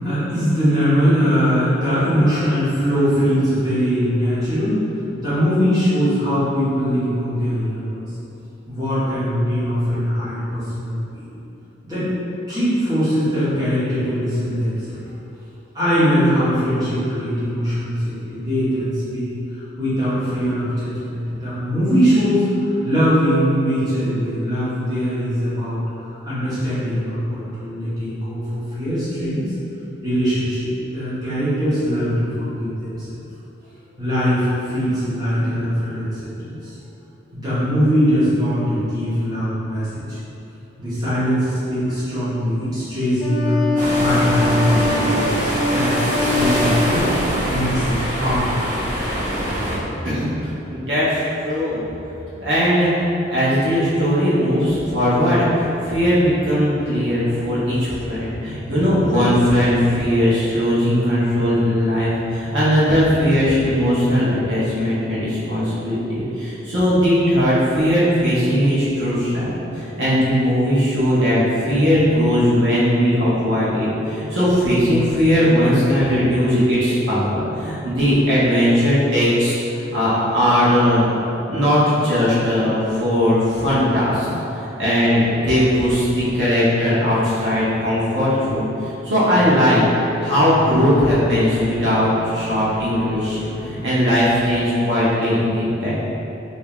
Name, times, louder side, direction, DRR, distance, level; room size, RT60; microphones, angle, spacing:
voice 1, 0.0-4.8 5.2-8.0 8.7-11.3 11.8-12.1 12.5-15.0 15.7-25.8 26.1-29.4 30.0-33.2 34.0-36.1 36.4-36.7 37.3-40.2 40.8-43.6 44.0-47.1 47.5-48.6, equal, 20° right, -14 dB, 1.3 m, -21 dB
Wind instrument woodwind instrument, 43.2-47.5, left 2 dB, 20° left, 0.8 m, -23 dB
sound 1, 43.8-49.8, equal, 40° right, 1.4 m, -23 dB
voice 2, 50.7-51.8 52.4-53.0 53.3-81.1 81.5-84.3 84.6-89.8 90.2-96.0, equal, 75° right, -10 dB, 1.1 m, -18 dB
sound 2, 89.4-94.6, left 2 dB, 80° left, 0.4 m, -33 dB
3.5 x 2.8 x 3.7 m, 2.9 s
head